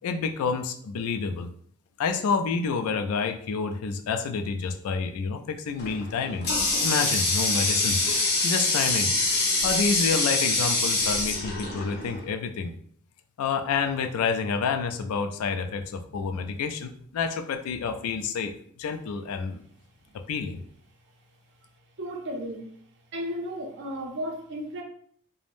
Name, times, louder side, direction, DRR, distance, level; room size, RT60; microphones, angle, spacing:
voice 1, 0.0-1.5 2.0-6.5 6.8-8.0 8.4-9.1 9.6-12.7 13.4-19.6 20.1-20.6, left 5 dB, 75° left, 6 dB, 0.3 m, -28 dB
Water tap faucet, 5.8-12.3, left 2 dB, 50° left, 0.7 m, -25 dB
voice 2, 22.0-22.7 23.1-24.8, equal, 55° right, 1 dB, 0.6 m, -34 dB
3.3 x 2.0 x 2.5 m, 0.62 s
head